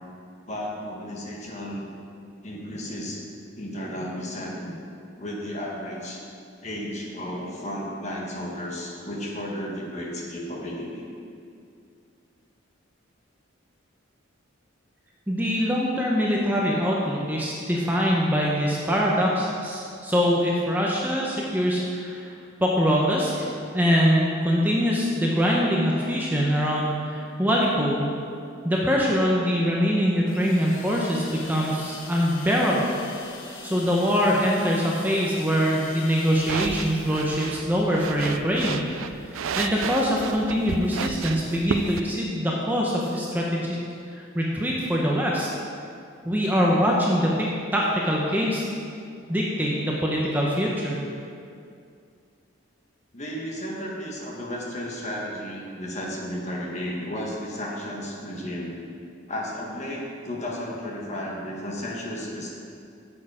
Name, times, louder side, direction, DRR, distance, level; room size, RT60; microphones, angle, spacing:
voice 1, 0.5-1.9 2.4-3.2 3.5-4.8 5.2-6.2 6.6-11.1 53.1-58.7 59.3-62.5, equal, 35° left, -2 dB, 1.5 m, -33 dB
voice 2, 15.3-22.3 22.6-28.1 28.6-32.9 33.6-38.8 39.6-43.8 44.1-45.5 46.2-48.6 49.3-51.0, equal, 10° right, -3 dB, 0.8 m, -23 dB
sound 1, 30.3-37.9, left 3 dB, 80° left, 1.2 m, -43 dB
sound 2, 36.3-42.0, right 6 dB, 90° right, 0.4 m, -33 dB
8.7 x 8.2 x 4.9 m, 2.4 s
head